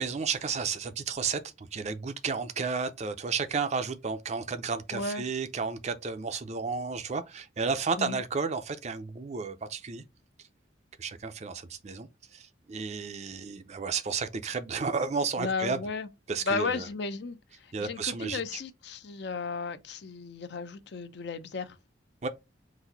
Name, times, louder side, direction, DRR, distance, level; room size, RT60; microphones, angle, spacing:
voice 1, 0.0-10.0 11.0-15.8 16.3-16.9 17.7-18.6 22.2-22.3, right 5 dB, 35° right, 0.5 m, -32 dB
voice 2, 4.9-5.2 8.0-8.2 15.4-16.1 16.5-17.4 17.6-21.8, left 4 dB, 60° left, 0.6 m, -34 dB
4.1 x 2.6 x 3.9 m
head